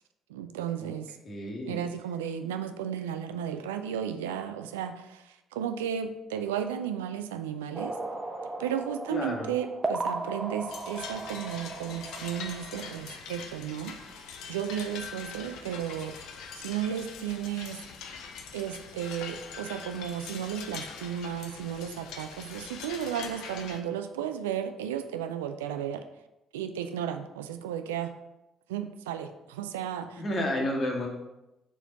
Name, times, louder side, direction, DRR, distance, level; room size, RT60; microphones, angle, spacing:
voice 1, 0.3-1.2 1.7-8.0 8.6-14.0 14.5-16.2 16.6-17.8 18.5-26.0 26.5-28.1 28.7-30.2, right 9 dB, 75° right, 8 dB, 0.3 m, -34 dB
voice 2, 1.2-1.8 9.1-9.5 30.2-31.1, left 1 dB, 40° left, 0 dB, 1.6 m, -31 dB
sound 1, 7.7-13.1, right 2 dB, 20° right, 0.7 m, -36 dB
sound 2, 10.7-23.8, left 6 dB, 60° left, 0.6 m, -43 dB
4.4 x 4.4 x 5.6 m, 0.94 s
figure-of-eight pair, 45°, 0 cm